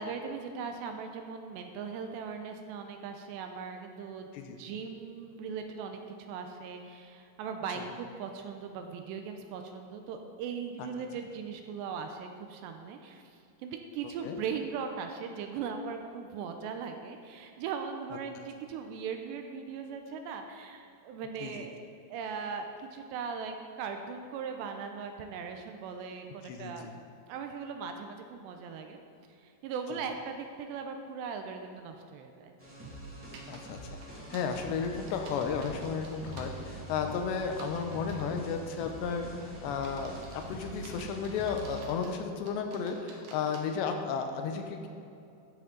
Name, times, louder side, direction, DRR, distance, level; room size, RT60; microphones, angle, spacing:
voice 1, 0.0-21.8 22.1-26.9 27.3-29.0 29.4-32.5, right 6 dB, 85° right, 5 dB, 2.8 m, -39 dB
voice 2, 26.4-26.9 33.5-34.0 34.3-44.9, left 6 dB, 80° left, 5 dB, 3.0 m, -34 dB
sound 1, 32.6-41.8, right 1 dB, 10° right, 0.7 m, -44 dB
sound 2, 33.3-33.6 34.0-36.5 37.5-38.3 38.9-39.2 39.7-42.1 42.5-43.6, right 4 dB, 65° right, 2.7 m, -52 dB
14.0 x 7.8 x 4.0 m, 2.6 s
omnidirectional pair, 5.2 m